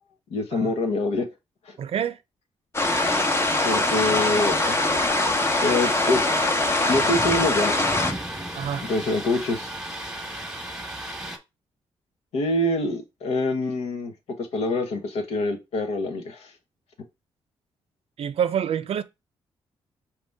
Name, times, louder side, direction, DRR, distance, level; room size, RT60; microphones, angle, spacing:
voice 1, 0.3-1.3 1.7-1.8 3.6-5.4 5.6-6.2 6.9-7.8 8.9-9.7 12.3-16.5, left 2 dB, 75° left, 1.1 m, -26 dB
voice 2, 1.8-2.2 8.5-8.9 18.2-19.0, right 8 dB, 65° right, 0.5 m, -27 dB
sound 1, 2.7-8.1, left 2 dB, 25° left, 1.0 m, -22 dB
Thunder, 2.8-11.4, right 1 dB, 5° right, 1.2 m, -35 dB
5.0 x 3.0 x 3.5 m
supercardioid pair, 60°, 11 cm